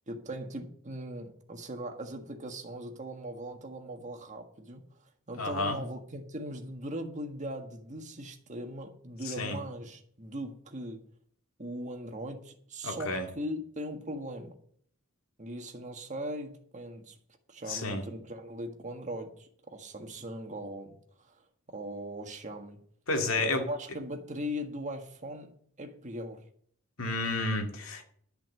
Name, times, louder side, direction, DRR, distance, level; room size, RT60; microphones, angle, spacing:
voice 1, 0.1-4.8 5.3-11.0 11.6-14.5 15.4-17.1 17.5-21.3 21.7-22.8 23.3-25.5 25.8-26.4, equal, 35° right, 1.6 m, -39 dB
voice 2, 5.4-5.8 9.3-9.6 12.8-13.2 17.7-18.0 23.1-23.6 27.0-28.0, left 2 dB, 70° left, 2.1 m, -31 dB
11.0 x 5.8 x 7.8 m
head